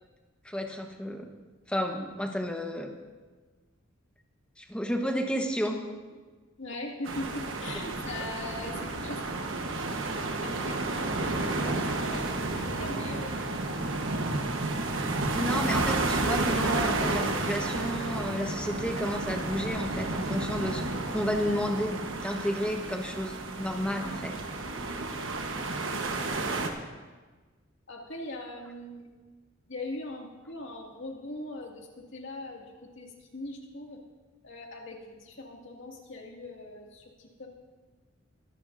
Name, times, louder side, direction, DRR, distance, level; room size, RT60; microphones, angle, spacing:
voice 1, 0.4-1.3 1.7-2.9 4.6-5.8 15.3-20.8 21.1-24.5, equal, 5° left, 3 dB, 1.1 m, -32 dB
voice 2, 6.6-9.3 9.8-10.1 10.4-11.2 11.5-12.3 12.6-13.4 25.0-25.3 27.9-29.1 29.7-34.0 34.4-37.5, left 2 dB, 70° left, -1 dB, 2.1 m, -41 dB
sound 1, 7.0-26.7, right 2 dB, 80° right, 1.2 m, -31 dB
23.0 x 10.5 x 2.6 m, 1.3 s
head